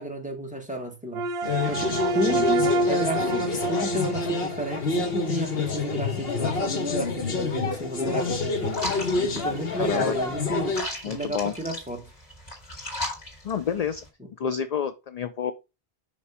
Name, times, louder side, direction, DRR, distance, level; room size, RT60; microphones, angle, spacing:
voice 1, 0.0-8.8 9.2-12.1, equal, 5° right, 1.4 m, -32 dB
sound 1, 1.1-5.4, right 2 dB, 85° right, 1.0 m, -28 dB
sound 2, 1.4-10.8, left 4 dB, 70° left, 1.5 m, -28 dB
sound 3, 8.7-14.1, left 1 dB, 85° left, 2.6 m, -37 dB
voice 2, 9.8-10.1 11.0-11.5 13.4-14.0 14.4-15.5, left 7 dB, 50° left, 0.5 m, -29 dB
5.5 x 5.2 x 4.8 m
omnidirectional pair, 1.0 m